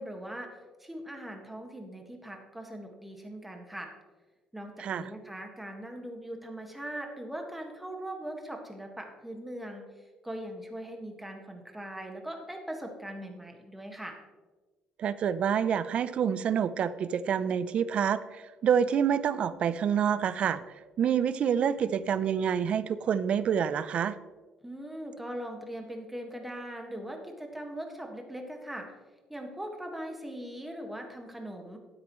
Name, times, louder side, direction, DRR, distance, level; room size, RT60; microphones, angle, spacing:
voice 1, 0.0-3.9 4.5-9.9 10.2-14.2 24.6-28.9 29.3-31.8, right 1 dB, 5° right, 3 dB, 1.6 m, -40 dB
voice 2, 4.8-5.1 15.0-20.6 21.0-24.2, right 8 dB, 50° right, 15 dB, 0.5 m, -27 dB
13.0 x 9.6 x 3.1 m, 1.3 s
cardioid pair, 120°, 2 cm